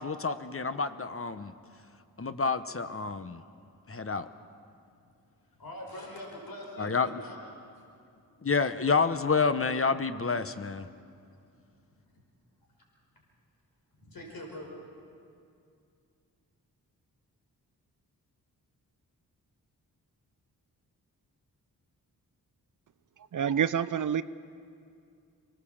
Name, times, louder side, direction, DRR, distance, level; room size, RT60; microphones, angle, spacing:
voice 1, 0.0-1.5 2.2-3.4 3.9-4.3 6.8-7.2 8.4-10.9, left 4 dB, 35° left, 11 dB, 1.1 m, -29 dB
voice 2, 5.6-7.4 7.7-7.8 14.0-14.7, left 1 dB, 65° left, 0 dB, 5.4 m, -43 dB
voice 3, 23.3-24.2, right 8 dB, 55° right, 15 dB, 0.6 m, -27 dB
24.0 x 18.5 x 7.3 m, 2.4 s
cardioid pair, 45°, 38 cm